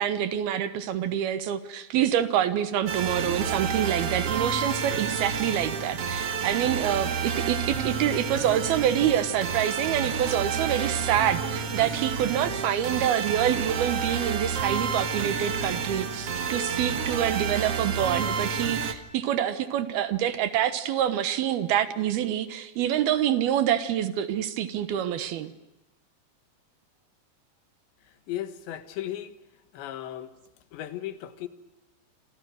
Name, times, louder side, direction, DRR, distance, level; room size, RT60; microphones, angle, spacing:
voice 1, 0.0-25.5, right 10 dB, 70° right, 12 dB, 2.9 m, -26 dB
sound 1, 2.9-18.9, right 6 dB, 50° right, 1.8 m, -30 dB
voice 2, 28.1-29.4 29.7-30.3 30.7-31.5, left 12 dB, 80° left, 11 dB, 3.8 m, -36 dB
28.0 x 27.5 x 6.4 m, 0.94 s
omnidirectional pair, 5.0 m